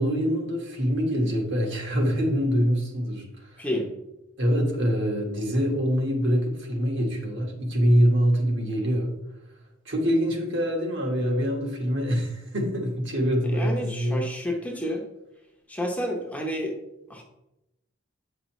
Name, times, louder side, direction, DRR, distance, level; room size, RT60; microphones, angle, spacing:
voice 1, 0.0-3.7 4.4-9.1 9.8-14.2, equal, 60° right, 1 dB, 1.5 m, -24 dB
voice 2, 3.6-3.9 13.4-15.0 15.7-16.7 17.1-17.2, equal, 5° left, 0 dB, 0.8 m, -30 dB
8.4 x 5.4 x 3.1 m, 0.92 s
head